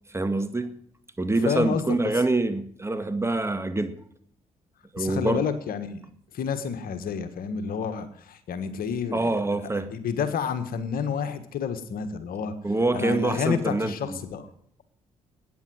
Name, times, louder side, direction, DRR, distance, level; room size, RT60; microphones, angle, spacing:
voice 1, 0.1-0.8 1.2-4.0 4.9-5.5 9.1-9.9 12.6-14.2, right 2 dB, 15° right, 1.9 m, -26 dB
voice 2, 1.4-2.0 5.0-6.0 6.3-12.5 12.9-14.5, left 6 dB, 65° left, 1.6 m, -30 dB
14.0 x 9.7 x 6.3 m
hypercardioid pair, 50°, 16 cm